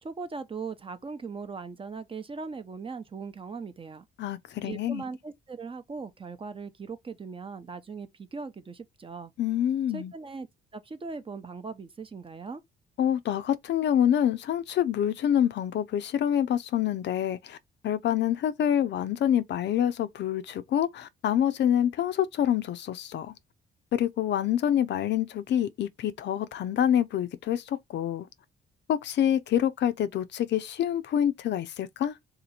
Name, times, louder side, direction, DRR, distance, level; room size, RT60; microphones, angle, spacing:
voice 1, 0.0-4.1 4.6-9.3 9.9-10.5 10.7-12.6, right 4 dB, 25° right, 0.6 m, -39 dB
voice 2, 4.2-5.0 9.4-10.1 13.0-17.6 17.8-23.3 23.9-28.3 28.9-32.2, left 10 dB, 65° left, 0.5 m, -26 dB
2.8 x 2.7 x 4.2 m
cardioid pair, 90°, 20 cm